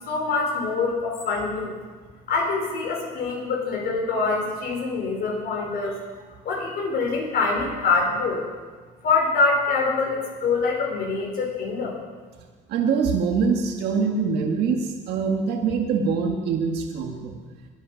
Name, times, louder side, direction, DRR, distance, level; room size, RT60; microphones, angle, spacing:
voice 1, 0.0-1.8 2.3-6.0 6.4-8.4 9.0-12.0, left 4 dB, 65° left, 0 dB, 5.0 m, -25 dB
voice 2, 12.7-17.3, right 5 dB, 75° right, 2 dB, 1.6 m, -24 dB
23.0 x 7.7 x 5.8 m, 1.4 s
cardioid pair, 110°, 17 cm